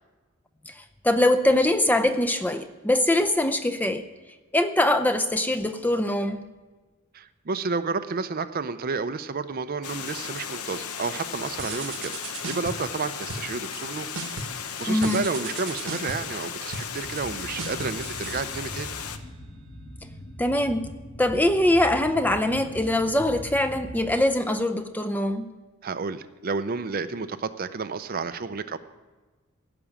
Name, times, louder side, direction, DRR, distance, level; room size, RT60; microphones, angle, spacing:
voice 1, 0.7-4.0 4.5-6.4 14.9-15.2 20.4-20.9 21.2-25.5, left 1 dB, 10° left, 8 dB, 0.5 m, -23 dB
voice 2, 7.1-12.2 12.5-14.1 14.7-18.9 25.8-28.8, right 4 dB, 40° right, 11 dB, 0.5 m, -31 dB
Water, 9.8-19.2, left 7 dB, 85° left, 0.8 m, -36 dB
sound 1, 11.6-12.9 13.3-13.9 14.1-14.7 15.0-19.0, right 4 dB, 65° right, 1.1 m, -37 dB
sound 2, 17.0-24.1, equal, 40° left, 1.5 m, -41 dB
16.0 x 6.1 x 8.6 m, 1.3 s
head